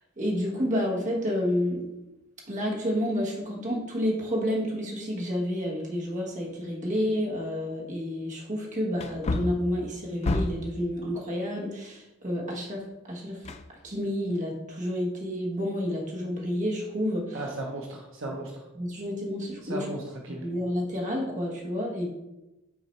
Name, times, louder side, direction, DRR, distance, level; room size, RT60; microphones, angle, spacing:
voice 1, 0.2-1.9 2.5-13.4 13.8-17.4 18.2-18.3 18.7-19.9 20.3-22.1, equal, 35° right, -2 dB, 1.4 m, -30 dB
Wood, 6.9-7.0 7.6-7.7 9.0-10.8 13.4-14.2 14.6-14.7, left 2 dB, 30° left, 0.3 m, -31 dB
voice 2, 17.3-18.5 19.7-20.5, right 1 dB, 65° right, 0 dB, 0.8 m, -35 dB
6.2 x 3.9 x 4.3 m, 0.97 s
head